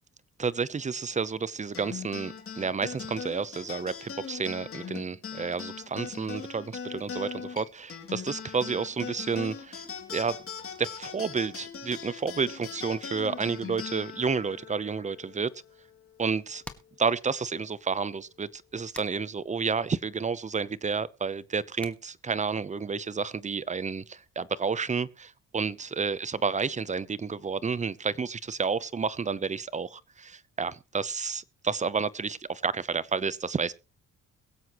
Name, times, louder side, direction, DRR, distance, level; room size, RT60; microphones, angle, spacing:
voice 1, 0.4-9.8 10.1-10.4 10.8-15.5 16.2-16.6 17.0-33.7, right 5 dB, 25° right, 0.7 m, -30 dB
sound 1, 1.7-16.5, left 6 dB, 45° left, 2.8 m, -40 dB
sound 2, 16.3-22.8, left 1 dB, 5° left, 1.5 m, -53 dB
22.5 x 7.8 x 3.1 m
cardioid pair, 90°, 30 cm